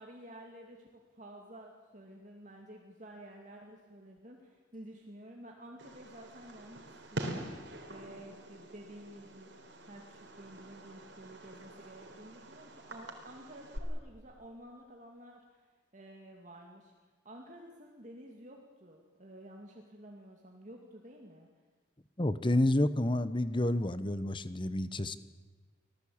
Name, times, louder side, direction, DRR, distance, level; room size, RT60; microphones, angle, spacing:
voice 1, 0.0-16.9 17.2-21.5, right 1 dB, 40° right, 1 dB, 2.5 m, -51 dB
Fireworks, 5.8-13.8, right 1 dB, 60° right, 3.8 m, -45 dB
voice 2, 22.2-25.2, left 1 dB, 25° left, 14 dB, 1.0 m, -29 dB
26.0 x 18.0 x 8.7 m, 1.4 s
head